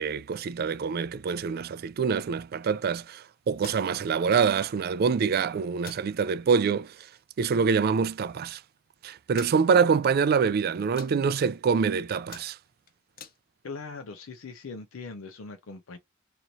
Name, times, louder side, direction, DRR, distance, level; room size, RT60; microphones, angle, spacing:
voice 1, 0.0-6.9 7.4-8.6 9.0-12.6, right 6 dB, 50° right, 0.3 m, -25 dB
sound 1, 3.5-3.9 5.1-5.4 5.8-6.0 6.5-6.6 7.0-7.2 8.0-8.1 8.3-8.4 9.3-9.6 10.2-10.5 10.8-11.1 11.7-11.9 12.2-13.4, left 7 dB, 45° left, 0.7 m, -47 dB
voice 2, 13.6-16.0, left 4 dB, 85° left, 0.6 m, -40 dB
3.0 x 2.5 x 4.0 m
head